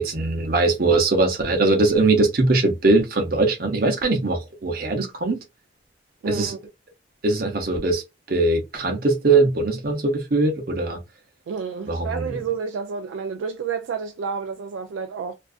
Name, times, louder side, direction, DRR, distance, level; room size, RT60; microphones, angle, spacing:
voice 1, 0.0-5.4 6.3-6.5 7.2-8.0 8.3-11.0 11.9-12.4, right 3 dB, 45° right, 0.7 m, -21 dB
voice 2, 6.2-6.6 11.5-15.3, right 6 dB, 75° right, 0.3 m, -30 dB
2.5 x 2.3 x 2.3 m
head